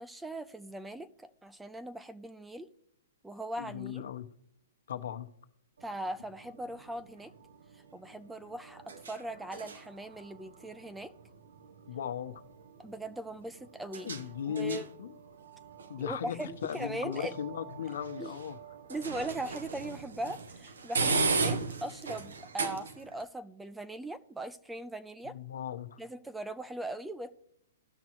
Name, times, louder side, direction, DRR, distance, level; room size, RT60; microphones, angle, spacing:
voice 1, 0.0-2.7 3.2-4.0 5.8-7.3 7.7-11.1 12.8-14.1 14.5-14.8 16.0-17.3 18.2-18.4 18.9-25.4 26.0-27.3, right 1 dB, 5° right, 0.5 m, -40 dB
voice 2, 3.6-4.3 4.9-5.3 11.9-12.3 14.0-15.1 15.9-16.4 16.6-18.6 21.1-21.4 25.2-26.0, left 9 dB, 70° left, 1.0 m, -37 dB
sound 1, 5.8-23.2, right 4 dB, 90° right, 0.9 m, -38 dB
17.0 x 6.1 x 3.1 m
hypercardioid pair, 155°, 0 cm